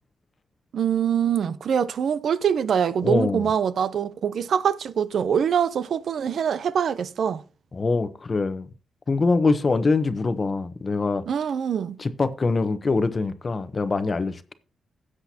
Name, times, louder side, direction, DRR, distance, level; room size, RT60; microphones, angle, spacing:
voice 1, 0.7-7.4 11.3-12.0, right 8 dB, 65° right, 0.6 m, -24 dB
voice 2, 3.0-3.5 7.7-8.7 9.1-11.2 12.0-14.5, left 3 dB, 35° left, 0.9 m, -24 dB
16.5 x 7.7 x 2.8 m
cardioid pair, 120°, 0 cm